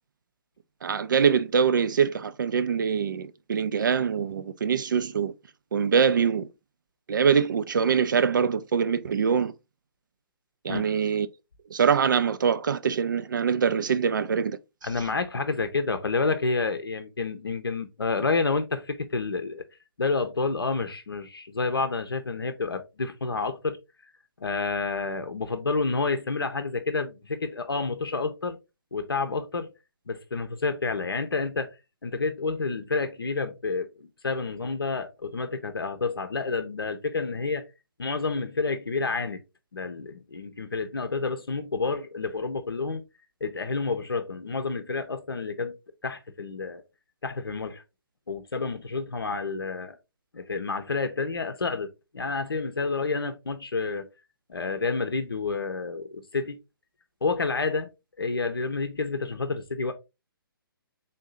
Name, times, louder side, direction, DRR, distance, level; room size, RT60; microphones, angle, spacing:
voice 1, 0.8-5.3 5.7-6.5 7.1-9.5 10.6-11.3 11.7-14.6, right 6 dB, 55° right, 0.4 m, -24 dB
voice 2, 14.8-19.6 20.0-23.8 24.4-28.6 28.9-29.7 30.1-31.7 32.0-37.6 38.0-39.4 39.7-43.0 43.4-45.8 46.0-46.8 47.2-47.8 48.3-50.0 50.3-54.1 54.5-56.6 57.2-57.9 58.2-59.9, left 4 dB, 75° left, 0.6 m, -29 dB
3.7 x 2.7 x 3.8 m
figure-of-eight pair, 135°, 12 cm